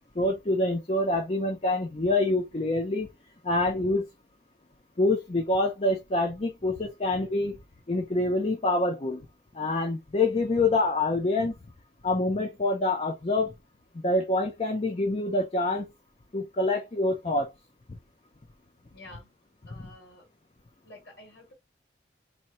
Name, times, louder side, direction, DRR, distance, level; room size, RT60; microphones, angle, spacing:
voice 1, 0.2-3.1 3.4-4.1 5.0-7.6 7.9-9.3 9.5-11.5 12.0-13.5 14.0-15.9 16.3-17.5, left 2 dB, 35° left, 0.6 m, -26 dB
voice 2, 18.9-19.3 19.6-20.3 20.8-21.5, left 1 dB, 70° left, 2.5 m, -50 dB
4.2 x 2.8 x 2.9 m
head